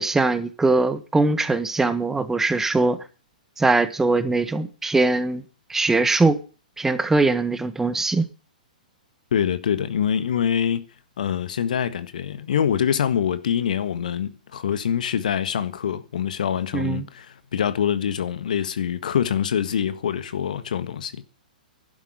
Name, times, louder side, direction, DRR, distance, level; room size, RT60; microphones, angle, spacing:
voice 1, 0.0-3.0 3.6-5.4 5.7-6.4 6.8-8.3 16.7-17.0, right 3 dB, 10° right, 1.5 m, -21 dB
voice 2, 9.3-10.8 11.2-21.2, left 8 dB, 65° left, 1.6 m, -25 dB
11.5 x 11.0 x 9.8 m
figure-of-eight pair, 110°, 5 cm